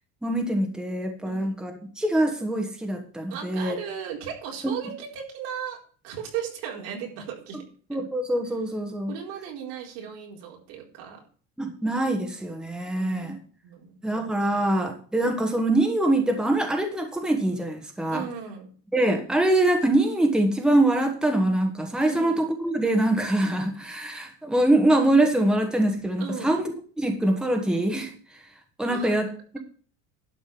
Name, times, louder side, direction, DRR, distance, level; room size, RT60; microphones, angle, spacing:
voice 1, 0.2-3.8 7.9-9.1 11.6-13.4 14.0-18.2 18.9-26.6 27.0-28.1 28.8-29.3, right 1 dB, ahead, 4 dB, 1.4 m, -24 dB
voice 2, 1.2-1.6 3.3-7.6 9.1-11.2 12.9-13.4 13.6-13.9 18.1-18.7 22.1-22.5 26.2-26.6 28.9-29.2, right 8 dB, 90° right, -1 dB, 4.4 m, -36 dB
11.5 x 5.3 x 7.6 m, 0.42 s
cardioid pair, 165°, 29 cm